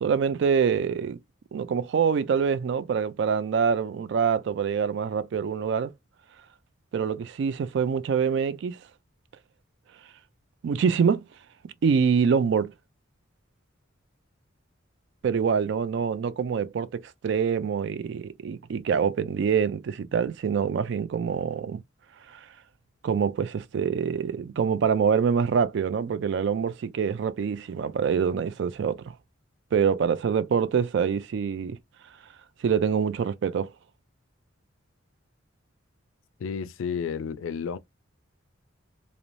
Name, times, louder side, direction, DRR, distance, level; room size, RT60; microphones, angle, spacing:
voice 1, 0.0-1.2 1.5-5.9 6.9-8.8 10.6-11.2 11.8-12.7 15.2-21.8 22.3-22.4 23.0-29.0 29.7-31.8 32.6-33.7, right 6 dB, 60° right, 0.3 m, -25 dB
voice 2, 36.4-37.8, left 6 dB, 85° left, 0.3 m, -31 dB
2.6 x 2.0 x 3.0 m
head